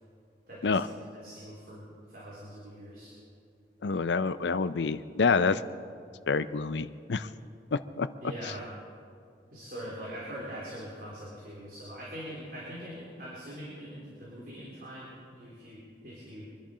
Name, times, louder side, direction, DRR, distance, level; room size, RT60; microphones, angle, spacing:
voice 1, 0.5-3.1 8.2-8.7 9.5-16.5, equal, 55° right, -7 dB, 3.6 m, -43 dB
voice 2, 3.8-5.6 6.3-7.3 7.7-8.1, left 4 dB, 90° left, 14 dB, 0.6 m, -27 dB
24.5 x 10.5 x 5.0 m, 2.3 s
head